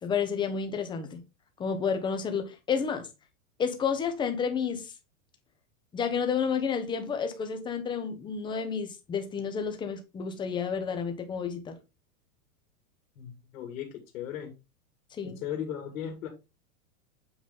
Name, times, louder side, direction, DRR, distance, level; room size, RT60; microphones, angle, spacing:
voice 1, 0.0-1.2 1.6-3.1 3.6-4.9 5.9-11.8 15.1-15.4, left 6 dB, 10° left, 0.7 m, -30 dB
voice 2, 13.2-13.9 14.1-14.5 15.4-16.3, left 9 dB, 65° left, 2.4 m, -36 dB
8.0 x 4.0 x 3.6 m
supercardioid pair, 155°, 43 cm